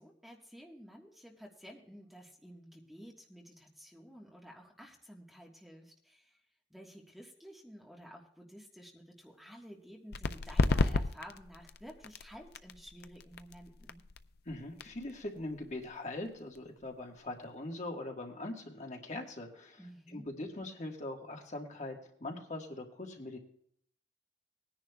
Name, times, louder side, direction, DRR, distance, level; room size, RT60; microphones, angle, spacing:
voice 1, 0.0-6.4 6.7-14.0 19.8-20.3, equal, ahead, 0 dB, 1.4 m, -52 dB
sound 1, 10.1-17.4, left 3 dB, 60° left, 0.5 m, -35 dB
voice 2, 14.4-21.9 22.2-23.4, left 2 dB, 40° left, 2 dB, 1.6 m, -42 dB
20.5 x 10.0 x 2.3 m, 0.67 s
head